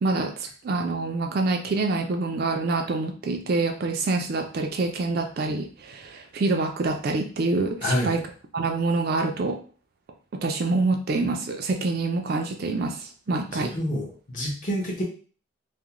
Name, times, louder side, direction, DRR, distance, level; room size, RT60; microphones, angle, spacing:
voice 1, 0.0-8.2 8.5-9.6 10.3-13.8, right 3 dB, 50° right, 4 dB, 0.3 m, -26 dB
voice 2, 7.8-8.2 13.3-15.0, equal, 40° left, -2 dB, 0.7 m, -28 dB
2.4 x 2.1 x 2.9 m, 0.40 s
head